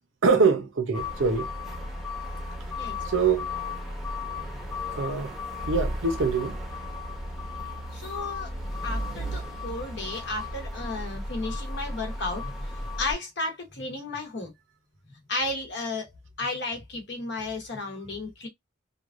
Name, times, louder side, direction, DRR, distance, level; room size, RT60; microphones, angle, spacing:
voice 1, 0.2-1.5 3.0-3.5 4.9-5.4 5.7-6.6, right 4 dB, 70° right, 0.7 m, -24 dB
sound 1, 0.9-13.1, left 2 dB, ahead, 0.8 m, -34 dB
voice 2, 7.9-8.5 8.8-12.7 13.0-14.5 15.3-16.1 16.4-18.5, left 2 dB, 55° left, 0.9 m, -33 dB
3.1 x 2.3 x 2.4 m
head